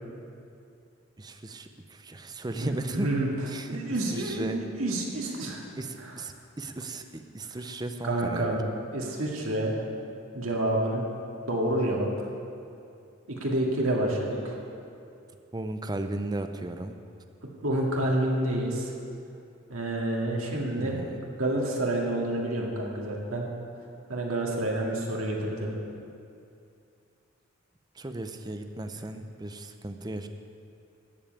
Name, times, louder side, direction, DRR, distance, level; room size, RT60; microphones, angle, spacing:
voice 1, 1.2-3.1 3.5-3.8 4.1-4.6 5.8-8.5 15.5-17.0 20.8-21.2 28.0-30.3, right 2 dB, 20° right, 7 dB, 0.6 m, -36 dB
voice 2, 2.6-3.3 3.7-5.6 6.0-6.1 8.0-8.6 8.9-9.8 10.3-11.1 11.5-12.3 13.3-14.6 17.6-18.9 19.7-21.0 21.4-23.5 24.1-25.7, right 1 dB, 85° right, -2 dB, 2.0 m, -28 dB
13.5 x 5.5 x 8.8 m, 2.5 s
head